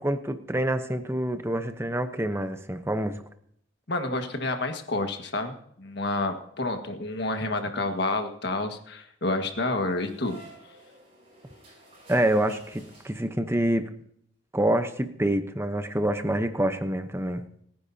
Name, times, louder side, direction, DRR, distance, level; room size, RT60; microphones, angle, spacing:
voice 1, 0.0-3.2 12.1-13.9 14.5-17.5, right 1 dB, 10° right, 9 dB, 0.8 m, -27 dB
voice 2, 3.9-10.4, left 2 dB, 55° left, 5 dB, 1.7 m, -29 dB
sound 1, 9.7-13.6, right 2 dB, 30° right, 7.9 m, -52 dB
30.0 x 10.0 x 2.8 m, 0.69 s
head